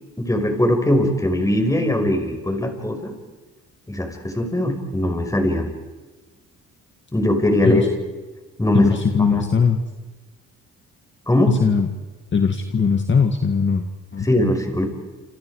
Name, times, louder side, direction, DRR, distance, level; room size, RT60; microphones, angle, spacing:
voice 1, 0.2-3.1 3.9-5.7 7.1-7.9 8.6-8.9 9.1-9.4 11.3-11.6 14.2-14.9, left 1 dB, 10° left, 4 dB, 5.2 m, -20 dB
voice 2, 8.7-9.8 11.5-11.9 12.3-13.9 14.1-14.3, left 5 dB, 40° left, 5 dB, 1.9 m, -19 dB
28.5 x 28.0 x 4.9 m, 1.2 s
cardioid pair, 90°, 30 cm